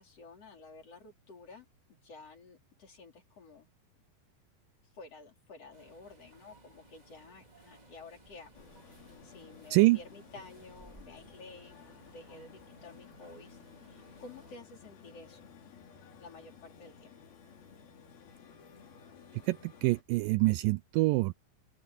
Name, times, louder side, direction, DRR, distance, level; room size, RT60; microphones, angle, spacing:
voice 1, 0.0-3.7 4.9-9.0 9.2-15.5 16.2-17.2, left 3 dB, 45° left, 4.5 m, -52 dB
sound 1, 5.7-14.5, right 2 dB, 15° right, 2.0 m, -59 dB
sound 2, 8.5-20.0, left 6 dB, 80° left, 4.7 m, -55 dB
voice 2, 19.5-21.3, right 21 dB, 80° right, 2.1 m, -26 dB
open air
omnidirectional pair, 4.2 m